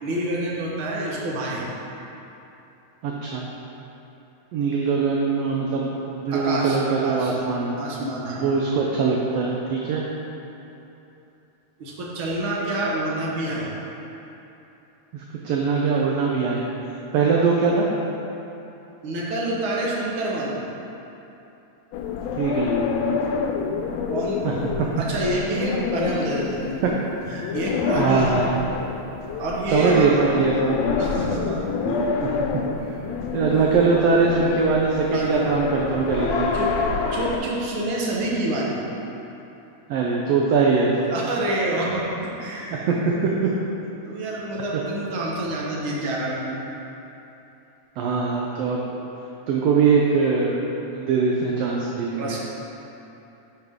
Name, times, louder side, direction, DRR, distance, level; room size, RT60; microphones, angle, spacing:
voice 1, 0.0-1.7 6.3-7.3 7.8-8.5 11.8-13.7 19.0-20.6 24.1-24.5 25.0-26.9 27.3-28.4 29.4-30.2 31.0-31.6 31.9-32.2 35.0-35.5 36.5-36.7 37.1-38.9 41.1-42.9 44.0-46.6 52.2-52.4, right 1 dB, 55° right, -4 dB, 1.8 m, -27 dB
voice 2, 3.0-3.5 4.5-7.7 8.4-10.0 15.1-16.6 17.1-17.9 22.4-22.7 24.4-24.5 28.0-28.7 29.7-30.9 31.8-32.0 32.2-32.3 32.9-33.0 33.3-36.5 39.9-41.0 42.9-43.5 48.0-49.0 49.5-50.6 50.9-52.3, right 4 dB, 75° right, -2 dB, 1.6 m, -22 dB
sound 1, 21.9-37.4, left 5 dB, 75° left, 1.6 m, -27 dB
10.5 x 5.8 x 3.6 m, 2.9 s
omnidirectional pair, 3.3 m